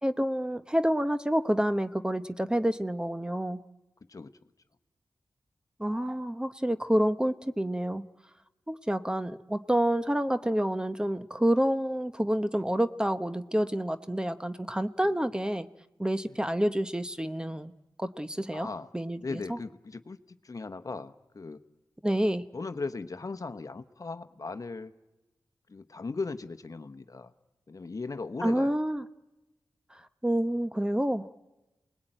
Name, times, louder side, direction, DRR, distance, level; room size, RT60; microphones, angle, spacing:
voice 1, 0.0-3.6 5.8-8.1 8.7-15.7 16.0-17.7 18.0-18.7 18.9-19.6 22.0-22.4 28.4-29.0 30.2-31.3, equal, 10° right, 11 dB, 0.9 m, -28 dB
voice 2, 18.5-18.9 19.2-20.2 20.4-21.6 22.5-24.9 25.7-27.3 27.7-28.8, left 3 dB, 50° left, 10 dB, 1.1 m, -38 dB
29.0 x 20.0 x 9.1 m, 1.1 s
cardioid pair, 50°, 8 cm